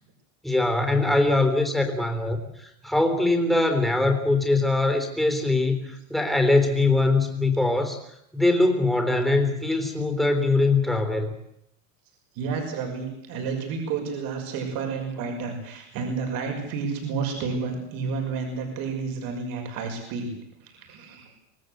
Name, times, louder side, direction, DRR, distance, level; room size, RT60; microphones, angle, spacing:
voice 1, 0.4-8.0 8.3-11.3, left 2 dB, ahead, 5 dB, 3.6 m, -22 dB
voice 2, 12.3-20.3 20.6-21.3, right 5 dB, 55° right, 3 dB, 6.0 m, -30 dB
25.5 x 18.5 x 8.0 m, 0.77 s
supercardioid pair, 145°, 42 cm